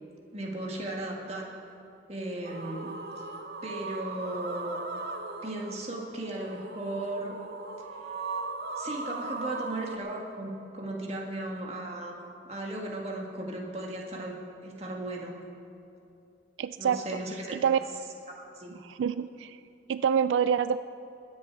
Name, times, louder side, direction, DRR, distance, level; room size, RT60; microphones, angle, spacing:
voice 1, 0.3-1.5 2.1-2.9 3.6-4.8 5.4-7.3 8.8-14.4 14.6-15.4 16.8-17.5 18.6-18.8, right 1 dB, 35° right, -1 dB, 1.8 m, -36 dB
sound 1, 2.4-10.0, right 3 dB, 60° right, 0.9 m, -38 dB
voice 2, 16.6-17.0 17.5-17.8 18.8-19.6 19.9-20.8, right 7 dB, 90° right, 13 dB, 0.3 m, -26 dB
21.5 x 9.6 x 4.7 m, 2.7 s
head